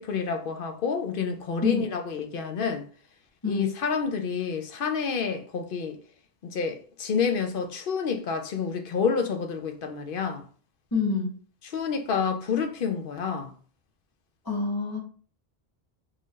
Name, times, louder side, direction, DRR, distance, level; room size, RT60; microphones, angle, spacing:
voice 1, 0.0-2.8 3.4-6.0 6.4-10.4 11.6-13.5, left 6 dB, 60° left, 0.8 m, -29 dB
voice 2, 10.9-11.3 14.4-15.0, left 4 dB, 20° left, 1.1 m, -26 dB
3.9 x 2.6 x 3.1 m
omnidirectional pair, 1.1 m